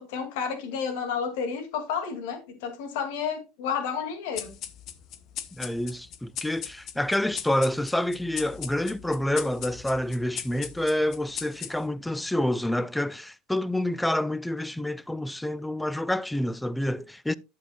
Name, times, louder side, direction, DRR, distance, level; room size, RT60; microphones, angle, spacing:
voice 1, 0.0-4.5, left 6 dB, 70° left, 2.1 m, -31 dB
sound 1, 4.4-12.1, left 9 dB, 50° left, 0.8 m, -39 dB
voice 2, 5.6-17.3, left 1 dB, 5° left, 0.4 m, -28 dB
11.0 x 7.4 x 2.3 m
hypercardioid pair, 90°, 0 cm